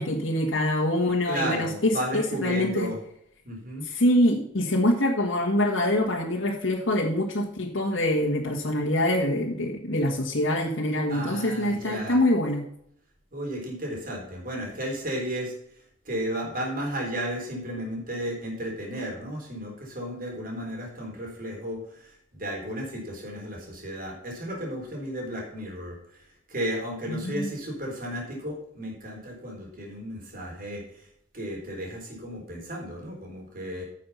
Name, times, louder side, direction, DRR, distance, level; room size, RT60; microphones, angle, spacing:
voice 1, 0.0-2.9 3.8-12.6 27.1-27.5, left 1 dB, 75° left, -2 dB, 1.6 m, -25 dB
voice 2, 1.3-3.0 3.4-3.9 11.1-12.2 13.3-15.5 16.1-26.0 26.5-30.8 31.3-33.8, equal, 50° right, -1 dB, 4.0 m, -33 dB
9.8 x 6.7 x 5.6 m, 0.70 s
head